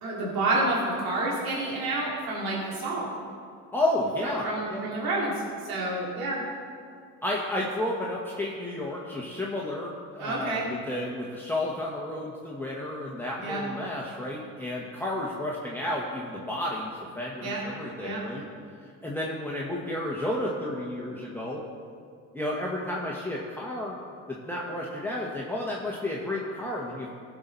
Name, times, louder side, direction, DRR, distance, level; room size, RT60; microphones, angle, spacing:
voice 1, 0.0-3.1 4.4-5.3 5.6-6.4 10.2-10.7 13.4-13.6 17.4-17.6 18.0-18.2, right 2 dB, 70° right, -5 dB, 2.5 m, -29 dB
voice 2, 3.7-4.9 7.2-18.4 18.8-21.6 22.3-24.0 24.3-27.1, left 1 dB, 5° left, -4 dB, 1.3 m, -32 dB
14.5 x 6.0 x 4.0 m, 2.2 s
supercardioid pair, 75°, 39 cm